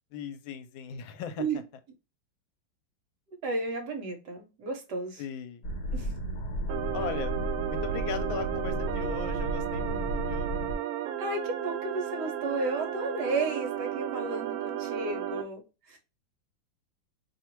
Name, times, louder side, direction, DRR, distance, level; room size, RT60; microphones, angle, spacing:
voice 1, 0.1-1.5 5.2-5.6 6.9-7.4 7.7-10.5, left 8 dB, 85° left, 1.4 m, -38 dB
voice 2, 3.4-5.2 5.9-6.2 11.2-16.0, right 3 dB, 65° right, 1.2 m, -33 dB
sound 1, 5.6-10.7, right 1 dB, 60° left, 1.4 m, -33 dB
sound 2, 6.7-15.4, right 11 dB, 85° right, 1.4 m, -34 dB
3.1 x 2.4 x 4.4 m
omnidirectional pair, 2.2 m